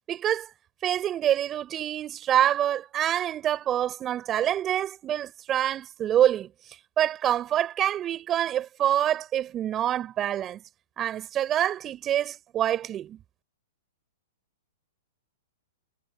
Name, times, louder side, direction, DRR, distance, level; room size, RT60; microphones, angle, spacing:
voice 1, 0.1-0.5 0.8-6.5 7.0-10.6 11.0-13.2, right 11 dB, 25° right, 6.3 m, -26 dB
hypercardioid pair, 115°, 0 cm